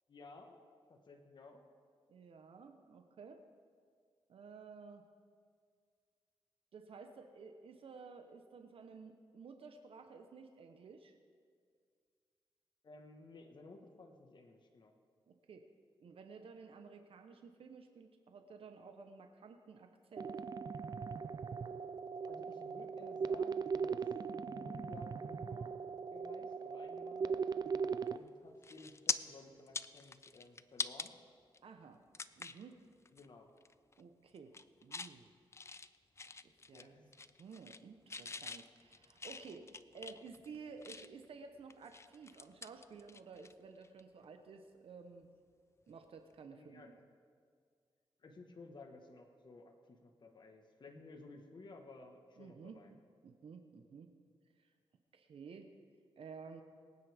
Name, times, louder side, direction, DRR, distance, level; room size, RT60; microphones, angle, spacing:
voice 1, 0.1-0.6 0.9-1.6 12.8-14.9 22.3-24.0 24.3-25.7 26.1-27.4 28.1-31.2 33.1-33.5 36.7-37.1 38.3-38.5 46.6-46.9 48.2-52.9, left 3 dB, 50° left, 3 dB, 1.4 m, -55 dB
voice 2, 2.1-3.4 4.3-5.0 6.7-11.2 15.3-15.7 16.0-20.3 31.6-32.0 32.4-32.8 34.0-34.5 34.8-35.3 36.7-37.0 37.4-45.3 45.9-47.0 52.4-54.1 54.6-54.7 55.1-55.7 56.2-56.6, right 5 dB, 70° right, 6 dB, 0.9 m, -53 dB
sound 1, 20.2-28.2, right 5 dB, 45° right, 0.5 m, -39 dB
sound 2, 28.1-28.3 28.6-29.2 29.6-31.1 31.5-31.6 32.1-32.6 33.1-33.3 33.6-34.0 34.4-35.1 35.5-36.9 37.1-37.8 38.1-41.3 41.7-43.5 43.8-44.0 45.9-46.0, left 4 dB, 30° left, 0.5 m, -44 dB
23.0 x 9.5 x 3.5 m, 2.1 s
cardioid pair, 85°, 10 cm